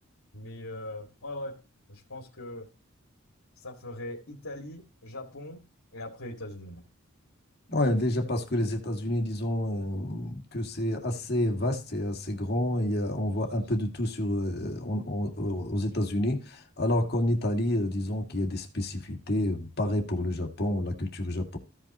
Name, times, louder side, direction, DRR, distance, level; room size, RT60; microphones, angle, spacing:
voice 1, 0.3-1.6 1.9-2.7 3.6-5.6 5.9-6.8, left 1 dB, 75° left, 2.2 m, -40 dB
voice 2, 7.7-21.6, left 1 dB, 45° left, 1.9 m, -29 dB
15.5 x 5.7 x 2.9 m
head